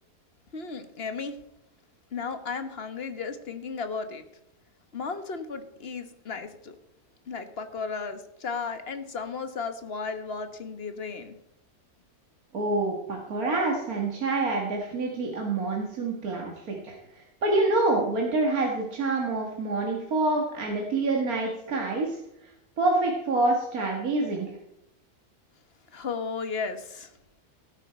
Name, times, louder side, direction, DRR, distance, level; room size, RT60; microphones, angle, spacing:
voice 1, 0.5-1.4 2.1-4.2 4.9-6.7 7.3-11.3 25.9-27.1, left 5 dB, 40° left, 9 dB, 1.3 m, -34 dB
voice 2, 12.5-22.5 22.8-24.5, right 2 dB, 65° right, 0 dB, 2.2 m, -27 dB
17.0 x 9.0 x 4.4 m, 0.82 s
omnidirectional pair, 1.6 m